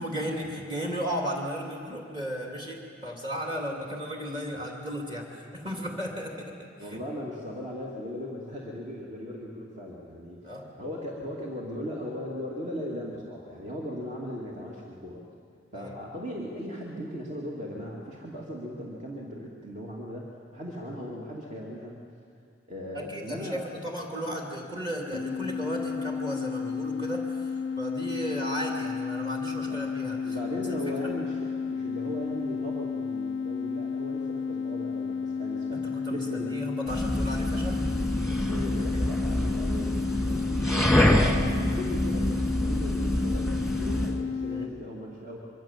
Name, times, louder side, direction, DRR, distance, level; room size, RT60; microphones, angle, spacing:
voice 1, 0.0-7.0 10.4-10.7 15.7-16.0 22.9-30.4 30.7-31.1 35.7-37.8 44.5-44.7, equal, 25° right, 0 dB, 2.8 m, -35 dB
voice 2, 6.8-15.2 15.7-22.0 22.7-23.7 29.6-29.8 30.2-35.8 36.1-36.6 38.5-45.5, equal, 40° right, -3 dB, 2.5 m, -38 dB
sound 1, 25.1-44.7, left 5 dB, 65° left, 0.5 m, -32 dB
sound 2, 36.9-44.2, equal, ahead, 2.0 m, -26 dB
25.0 x 24.5 x 7.4 m, 2.4 s
head